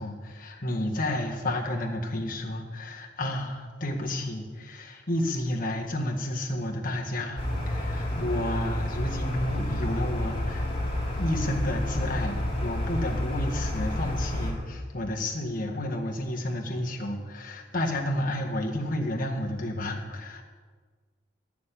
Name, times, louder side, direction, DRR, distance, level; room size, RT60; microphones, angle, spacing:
voice 1, 0.0-10.6 11.2-20.4, left 1 dB, 45° left, 0 dB, 1.7 m, -31 dB
sound 1, 7.4-14.5, left 1 dB, 30° left, 3.0 m, -30 dB
12.0 x 6.9 x 8.4 m, 1.5 s
head